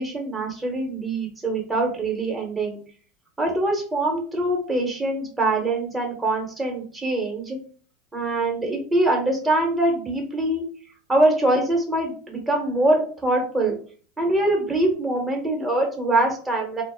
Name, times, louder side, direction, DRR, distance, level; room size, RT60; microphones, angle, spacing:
voice 1, 0.0-2.8 3.4-7.6 8.1-10.6 11.1-13.7 14.2-16.8, right 2 dB, 10° right, 0 dB, 0.8 m, -23 dB
2.0 x 2.0 x 3.4 m, 0.43 s
supercardioid pair, 125°, 0 cm